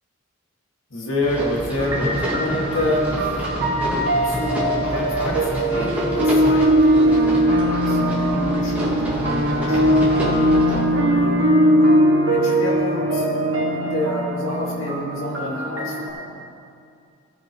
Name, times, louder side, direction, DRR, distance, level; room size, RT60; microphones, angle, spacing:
voice 1, 0.9-3.4 4.3-11.4 12.3-13.3 13.5-16.4, left 1 dB, 65° left, -2 dB, 2.0 m, -28 dB
sound 1, 1.2-10.8, equal, 10° right, 2.1 m, -29 dB
sound 2, 1.8-16.1, equal, 85° right, 2.0 m, -20 dB
17.0 x 8.8 x 3.1 m, 2.4 s
head